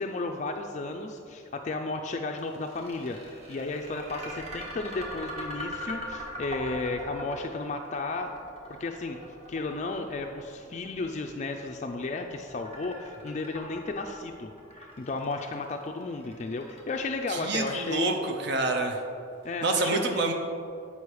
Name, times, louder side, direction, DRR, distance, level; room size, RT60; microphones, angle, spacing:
voice 1, 0.0-8.3 8.8-9.2 9.5-18.2 19.4-20.3, left 3 dB, 35° left, 3 dB, 0.3 m, -33 dB
sound 1, 2.4-18.5, equal, 35° right, 1.6 m, -42 dB
voice 2, 17.3-19.0 19.6-20.3, right 3 dB, 55° right, 4 dB, 0.6 m, -27 dB
8.4 x 5.5 x 4.7 m, 2.6 s
head